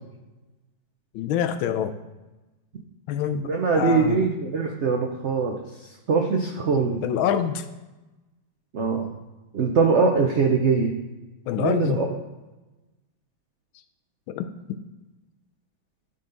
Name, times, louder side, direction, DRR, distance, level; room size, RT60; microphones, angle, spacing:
voice 1, 1.1-1.9 3.1-3.5 3.7-4.3 7.0-7.6 11.5-12.0 14.3-14.5, left 9 dB, 85° left, 9 dB, 1.4 m, -25 dB
voice 2, 3.4-5.6 6.1-7.0 8.7-9.1 9.5-10.9 11.6-12.1, right 5 dB, 75° right, 2 dB, 0.6 m, -22 dB
12.0 x 4.1 x 3.9 m, 1.1 s
omnidirectional pair, 2.1 m